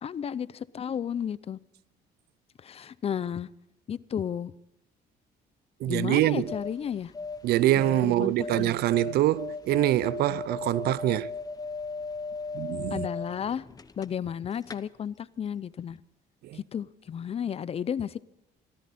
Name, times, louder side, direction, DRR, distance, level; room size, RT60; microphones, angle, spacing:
voice 1, 0.0-1.6 2.6-3.5 3.9-4.5 5.9-7.1 8.0-8.7 12.9-13.6 14.0-16.0 16.5-18.2, left 8 dB, 35° left, 0.6 m, -33 dB
voice 2, 5.8-6.5 7.4-11.3 12.5-13.1 16.4-16.6, right 14 dB, 70° right, 0.5 m, -25 dB
sound 1, 6.1-14.3 14.6-14.8, left 4 dB, 20° left, 0.9 m, -37 dB
24.5 x 13.0 x 4.3 m
cardioid pair, 110°, 17 cm